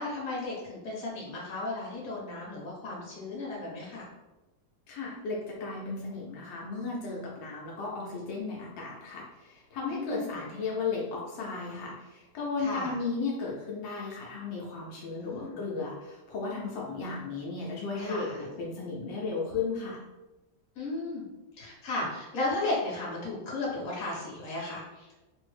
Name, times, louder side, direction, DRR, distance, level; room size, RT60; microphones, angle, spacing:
voice 1, 0.0-4.0 9.9-10.4 12.6-13.0 15.2-15.6 18.0-18.4 20.7-21.2 21.6-25.2, left 2 dB, 55° left, -5 dB, 1.4 m, -35 dB
voice 2, 4.9-20.0, left 4 dB, 80° left, -4 dB, 1.4 m, -35 dB
3.8 x 2.0 x 3.2 m, 1.1 s
omnidirectional pair, 2.0 m